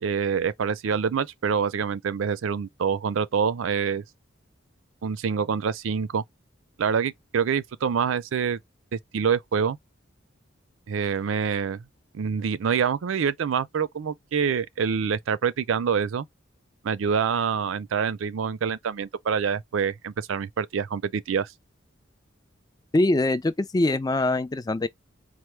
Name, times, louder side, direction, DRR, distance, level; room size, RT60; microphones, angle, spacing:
voice 1, 0.0-4.0 5.0-6.2 6.8-8.6 8.9-9.8 10.9-11.8 12.1-16.2 16.8-21.5, right 6 dB, 90° right, 0.4 m, -26 dB
voice 2, 22.9-24.9, left 2 dB, 20° left, 0.3 m, -23 dB
4.5 x 2.1 x 3.1 m
head